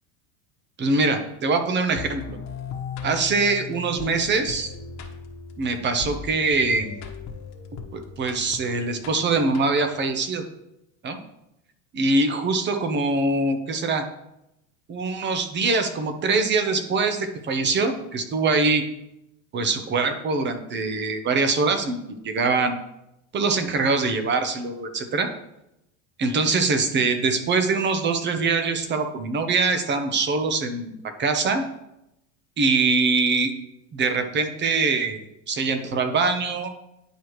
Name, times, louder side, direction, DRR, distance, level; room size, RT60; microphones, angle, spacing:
voice 1, 0.8-2.4 3.0-4.7 5.6-6.9 7.9-10.4 11.0-11.2 11.9-14.1 14.9-18.8 19.5-22.0 22.2-22.7 23.3-25.3 26.2-31.6 32.6-33.5 33.9-35.2 35.5-36.7, right 3 dB, 25° right, 7 dB, 0.9 m, -23 dB
sound 1, 2.0-10.1, left 6 dB, 40° left, 1.3 m, -38 dB
10.0 x 4.9 x 3.1 m, 0.85 s
supercardioid pair, 125°, 40 cm